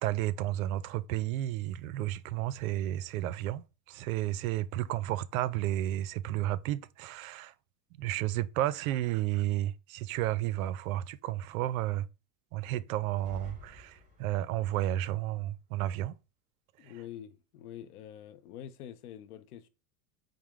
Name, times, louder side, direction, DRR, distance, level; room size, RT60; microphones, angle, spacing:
voice 1, 0.0-3.6 3.9-7.5 8.0-12.0 12.5-16.1, right 14 dB, 70° right, 0.5 m, -32 dB
sound 1, 13.0-14.7, left 2 dB, 15° right, 2.2 m, -50 dB
voice 2, 16.8-19.7, left 10 dB, 85° left, 0.7 m, -46 dB
4.7 x 2.1 x 3.4 m
supercardioid pair, 115°, 43 cm